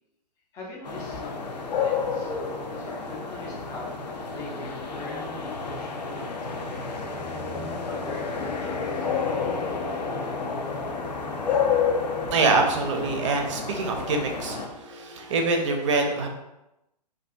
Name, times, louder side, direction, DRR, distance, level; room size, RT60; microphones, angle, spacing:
voice 1, 0.5-7.1 7.8-9.1, left 2 dB, 15° left, -2 dB, 0.4 m, -43 dB
sound 1, 0.8-14.7, left 5 dB, 80° left, 0.5 m, -30 dB
voice 2, 12.3-16.3, right 3 dB, 45° right, 3 dB, 0.5 m, -25 dB
2.4 x 2.2 x 2.5 m, 0.92 s
figure-of-eight pair, 120°, 21 cm